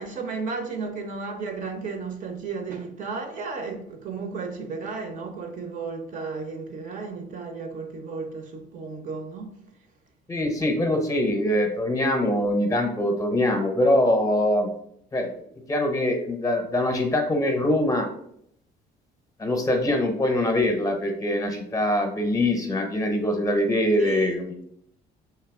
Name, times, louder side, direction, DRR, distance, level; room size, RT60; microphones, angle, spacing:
voice 1, 0.0-9.6 24.0-24.3, right 4 dB, 50° right, 0.6 m, -34 dB
voice 2, 10.3-14.7 15.1-15.3 15.7-18.1 19.4-24.6, left 1 dB, 20° left, 0.7 m, -23 dB
3.3 x 2.7 x 3.6 m
cardioid pair, 110°, 17 cm